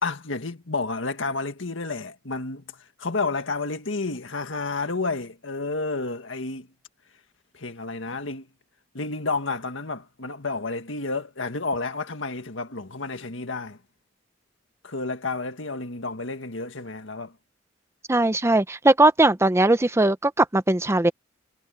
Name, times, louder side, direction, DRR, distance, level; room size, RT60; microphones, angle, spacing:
voice 1, 0.0-2.6 3.0-6.7 7.5-8.5 8.9-13.8 14.8-17.3, left 3 dB, 80° left, 1.9 m, -30 dB
voice 2, 18.1-21.1, right 2 dB, 15° right, 0.7 m, -19 dB
head